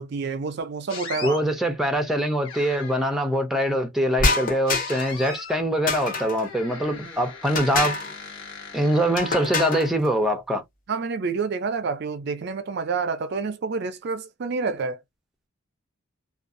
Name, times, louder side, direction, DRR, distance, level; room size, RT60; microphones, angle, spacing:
voice 1, 0.0-1.4 10.9-15.0, right 4 dB, 50° right, 0.4 m, -28 dB
sound 1, 0.9-1.4 2.4-3.2 4.7-5.6 6.4-9.9, left 5 dB, 65° left, 1.2 m, -39 dB
voice 2, 1.2-8.0 8.7-10.6, equal, ahead, 0.5 m, -23 dB
sound 2, 4.2-5.2 5.9-6.5 7.5-8.1 9.2-9.9, left 3 dB, 40° left, 0.7 m, -26 dB
2.5 x 2.3 x 2.4 m
head